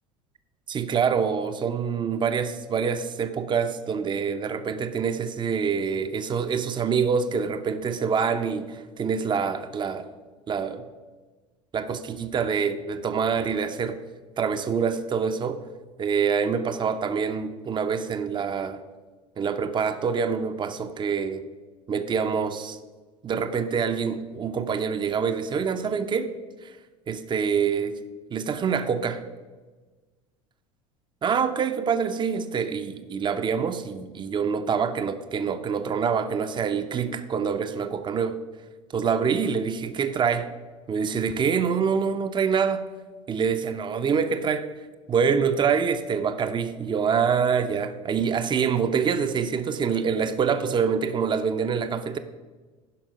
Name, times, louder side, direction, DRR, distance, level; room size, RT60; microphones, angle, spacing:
voice 1, 0.7-10.1 10.5-10.9 11.7-14.0 14.4-15.6 16.0-18.8 19.4-21.5 21.9-22.8 23.2-26.3 26.6-26.7 27.1-28.0 28.3-29.2 31.2-38.4 38.9-40.5 40.9-42.9 43.3-44.7 45.1-52.2, right 6 dB, 30° right, 10 dB, 0.7 m, -26 dB
11.5 x 5.3 x 5.2 m, 1.3 s
hypercardioid pair, 80°, 16 cm